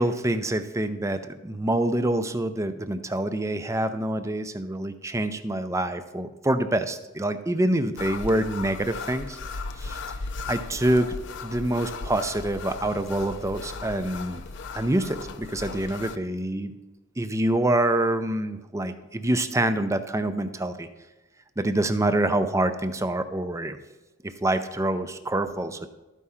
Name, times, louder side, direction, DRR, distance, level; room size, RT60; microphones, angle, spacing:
voice 1, 0.0-9.4 9.8-10.0 10.5-11.1 11.4-14.4 14.7-16.7 17.2-20.9 21.6-23.8 24.2-25.9, right 1 dB, 15° right, 10 dB, 0.5 m, -26 dB
sound 1, 8.0-16.2, left 4 dB, 55° left, 0.5 m, -37 dB
12.5 x 4.8 x 5.6 m, 1.1 s
head